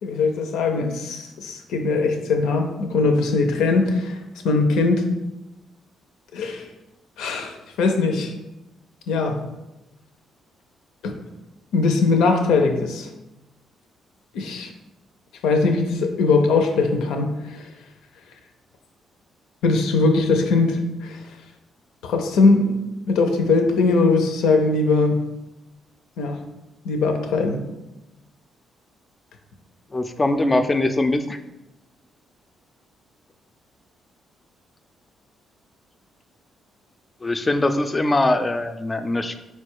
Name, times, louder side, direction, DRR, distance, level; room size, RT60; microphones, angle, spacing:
voice 1, 0.0-5.1 6.3-6.7 7.2-8.3 9.1-9.4 11.0-11.2 11.7-13.1 14.3-14.7 15.4-17.7 19.6-21.4 22.0-22.8 23.1-25.2 26.2-26.4 26.8-27.6, left 3 dB, 85° left, 5 dB, 0.5 m, -21 dB
voice 2, 29.9-31.4 37.2-39.4, left 2 dB, 20° left, 9 dB, 0.3 m, -22 dB
4.4 x 2.3 x 4.5 m, 0.97 s
cardioid pair, 90°, 0 cm